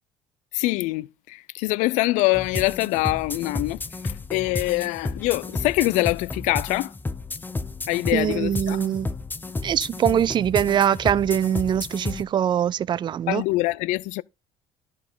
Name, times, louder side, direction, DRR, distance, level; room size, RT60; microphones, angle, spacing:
voice 1, 0.5-6.9 7.9-8.9 13.3-14.2, left 20 dB, 75° left, 0.5 m, -24 dB
sound 1, 2.3-12.2, left 3 dB, 15° left, 0.8 m, -32 dB
voice 2, 8.1-9.1 9.6-13.4, right 9 dB, 40° right, 0.4 m, -22 dB
11.5 x 6.3 x 3.9 m
supercardioid pair, 90°, 13 cm